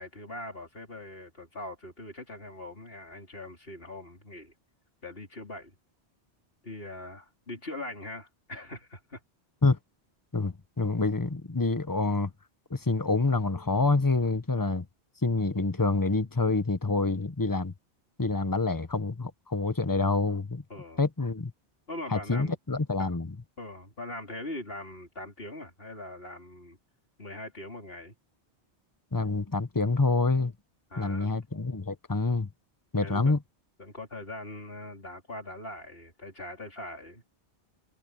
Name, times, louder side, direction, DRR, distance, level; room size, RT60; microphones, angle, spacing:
voice 1, 0.0-4.5 5.0-5.8 6.6-9.2 20.7-21.0 21.9-22.6 23.0-23.2 23.6-26.8 27.2-28.1 30.9-31.3 33.0-33.4 33.8-37.2, left 1 dB, 60° left, 4.7 m, -41 dB
voice 2, 10.3-12.3 12.7-14.9 15.2-17.7 18.2-20.6 21.0-21.5 22.1-23.3 29.1-30.5 31.0-32.5 32.9-33.4, left 3 dB, 20° left, 1.1 m, -27 dB
omnidirectional pair, 1.1 m